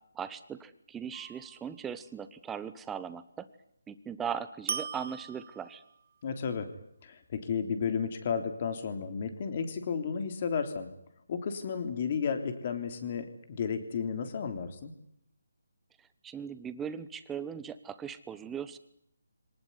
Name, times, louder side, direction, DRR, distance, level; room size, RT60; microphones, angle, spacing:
voice 1, 0.1-3.5 3.9-5.8 16.2-18.8, right 8 dB, 10° right, 13 dB, 1.1 m, -39 dB
sound 1, 1.1-1.8 4.7-6.1, right 7 dB, 45° right, 1.0 m, -40 dB
voice 2, 6.2-6.7 7.0-10.9 11.3-14.9, left 6 dB, 35° left, 8 dB, 3.4 m, -33 dB
23.5 x 19.0 x 9.7 m, 0.74 s
hypercardioid pair, 165°, 0 cm